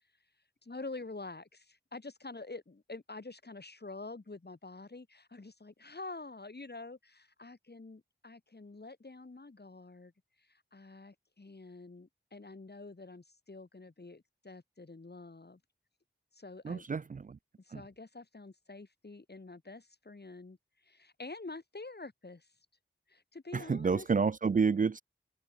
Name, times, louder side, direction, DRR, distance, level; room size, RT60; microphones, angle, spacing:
voice 1, 0.6-10.1 10.4-15.6 16.3-16.9 17.6-20.6 20.8-22.5 23.1-24.1, left 3 dB, 55° left, 6.7 m, -47 dB
voice 2, 16.6-17.4 17.7-17.8 23.5-25.0, right 5 dB, 40° right, 0.4 m, -29 dB
open air
wide cardioid pair, 50°, 20 cm